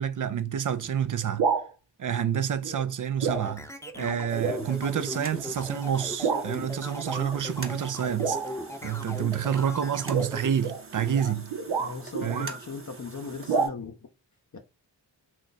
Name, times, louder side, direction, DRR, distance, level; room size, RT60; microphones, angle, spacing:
voice 1, 0.0-1.5 2.0-3.7 4.0-8.4 8.8-11.5 12.2-12.5, right 8 dB, 50° right, 0.5 m, -28 dB
sound 1, 1.2-1.7 2.6-2.9 3.2-3.5 3.9-4.0 4.4-4.7 5.3-5.5 6.2-6.5 7.0-7.3 8.2-8.7 10.0-12.6 13.5-13.7, right 5 dB, 90° right, 0.7 m, -29 dB
sound 2, 3.2-10.4, left 1 dB, 5° left, 0.7 m, -38 dB
sound 3, 4.3-13.7, right 3 dB, 30° right, 0.9 m, -45 dB
voice 2, 11.8-14.0 14.5-14.6, left 4 dB, 45° left, 0.7 m, -38 dB
3.1 x 2.4 x 4.0 m
cardioid pair, 40°, 42 cm